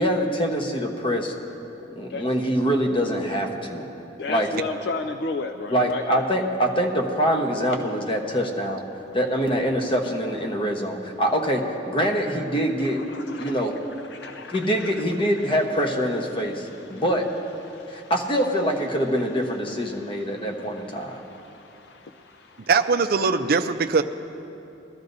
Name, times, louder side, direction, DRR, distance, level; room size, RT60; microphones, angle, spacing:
voice 1, 0.0-1.3 2.0-3.9 4.3-4.5 5.7-8.8 9.1-13.0 13.4-13.8 14.5-17.3 17.9-21.2, equal, 30° left, 2 dB, 1.0 m, -24 dB
voice 2, 4.2-6.2 10.5-10.7 13.1-13.5 14.1-14.9 17.7-18.1 21.3-21.4, left 3 dB, 65° left, 6 dB, 0.4 m, -32 dB
voice 3, 22.7-24.0, right 4 dB, 55° right, 8 dB, 0.5 m, -21 dB
21.0 x 13.0 x 2.7 m, 2.9 s
head